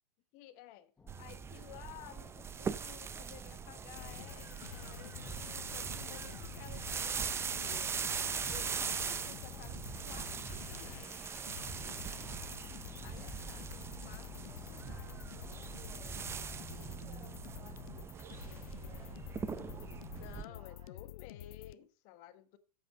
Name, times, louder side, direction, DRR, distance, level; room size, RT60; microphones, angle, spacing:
voice 1, 0.3-0.9 1.2-8.0 8.5-11.2 13.0-15.2 20.1-22.6, left 13 dB, 45° left, 1.4 m, -54 dB
sound 1, 1.0-16.3, left 4 dB, 10° left, 0.8 m, -62 dB
sound 2, 1.1-20.4, right 6 dB, 15° right, 0.5 m, -41 dB
sound 3, 3.9-21.8, left 14 dB, 65° left, 0.5 m, -49 dB
voice 2, 5.8-6.5 8.6-8.8 11.7-12.4 15.0-21.1, right 4 dB, 90° right, 3.1 m, -60 dB
8.9 x 8.0 x 6.1 m
hypercardioid pair, 120°, 19 cm